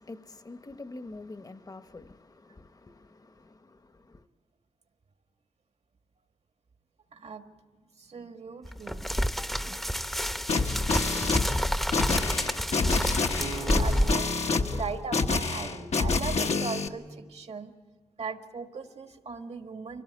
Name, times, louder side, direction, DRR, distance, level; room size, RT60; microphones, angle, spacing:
voice 1, 0.0-4.2, left 2 dB, 35° left, 0.9 m, -46 dB
voice 2, 7.1-7.6 8.0-9.2 11.1-11.2 11.7-11.8 12.4-12.8 13.7-17.7 18.2-20.0, right 4 dB, 70° right, 1.6 m, -39 dB
sound 1, 8.6-14.1, equal, ahead, 0.7 m, -29 dB
sound 2, 10.5-16.9, left 4 dB, 80° left, 1.2 m, -27 dB
sound 3, 13.4-16.6, right 4 dB, 50° right, 0.9 m, -43 dB
25.0 x 17.5 x 9.4 m
wide cardioid pair, 105°, 11 cm